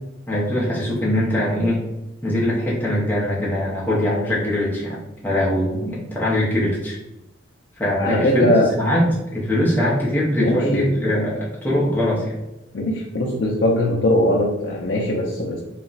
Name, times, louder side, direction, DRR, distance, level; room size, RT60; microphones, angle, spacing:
voice 1, 0.3-1.8 2.2-5.0 5.2-7.0 7.8-12.3, left 1 dB, 10° left, -7 dB, 0.5 m, -22 dB
voice 2, 8.0-8.7 10.4-10.9 12.7-15.6, left 1 dB, 60° left, -2 dB, 0.4 m, -20 dB
2.3 x 2.0 x 3.8 m, 0.96 s
head